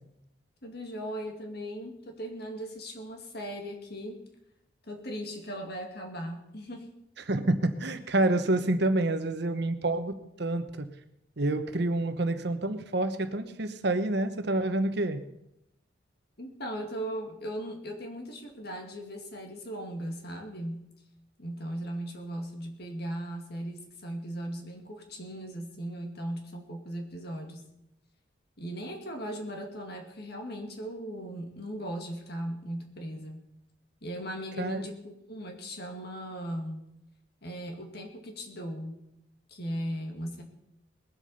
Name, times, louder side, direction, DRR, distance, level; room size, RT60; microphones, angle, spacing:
voice 1, 0.6-4.2 4.9-7.0 16.4-20.9 21.4-27.6 28.6-33.4 34.0-36.8 37.4-39.0 39.5-40.4, equal, 55° left, 3 dB, 2.3 m, -38 dB
voice 2, 7.3-10.9 11.4-15.2 34.6-34.8, right 2 dB, 55° right, 9 dB, 1.0 m, -28 dB
20.5 x 8.0 x 5.7 m, 0.82 s
head